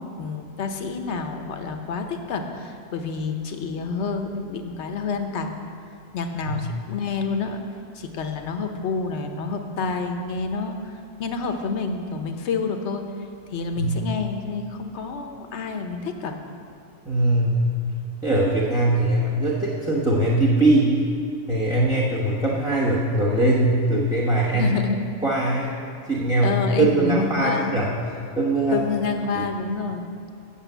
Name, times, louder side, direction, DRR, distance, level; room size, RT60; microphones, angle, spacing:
voice 1, 0.0-5.5 6.1-7.6 7.9-13.0 13.5-16.4 24.5-25.0 26.4-27.7 28.7-30.0, left 4 dB, 60° left, 5 dB, 1.1 m, -28 dB
voice 2, 17.0-17.6 18.2-21.0 21.5-24.7 25.2-25.7 26.1-27.9 28.4-28.8 29.3-29.4, right 2 dB, 5° right, -6 dB, 0.9 m, -21 dB
8.4 x 6.7 x 7.9 m, 2.4 s
omnidirectional pair, 1.3 m